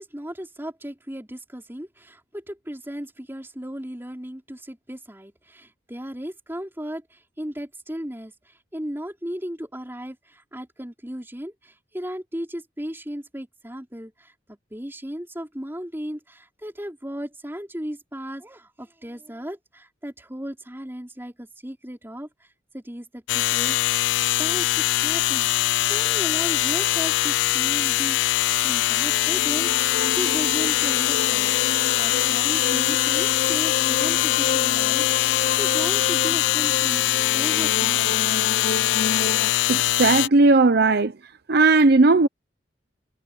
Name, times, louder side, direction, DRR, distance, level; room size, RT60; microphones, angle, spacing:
voice 1, 0.0-22.5 22.7-24.0 24.4-37.0 37.3-38.2, equal, 10° right, 4.1 m, -36 dB
sound 1, 23.3-40.3, left 15 dB, 75° left, 0.3 m, -22 dB
sound 2, 28.9-39.5, left 4 dB, 50° left, 0.7 m, -31 dB
voice 2, 39.7-41.2 41.5-42.3, right 3 dB, 55° right, 0.7 m, -17 dB
head